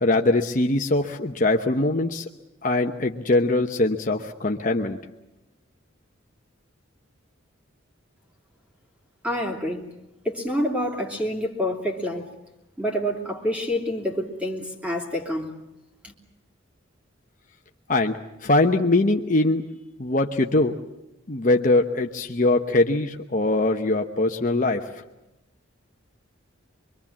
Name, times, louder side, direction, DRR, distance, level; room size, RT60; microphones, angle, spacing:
voice 1, 0.0-2.2 2.6-5.0 17.9-19.6 20.0-20.8 21.3-24.9, left 2 dB, 40° left, 3 dB, 1.0 m, -22 dB
voice 2, 9.2-9.8 10.2-12.3 12.8-15.5 16.0-16.1, equal, 5° right, 0 dB, 3.0 m, -27 dB
25.0 x 23.5 x 7.4 m, 0.91 s
head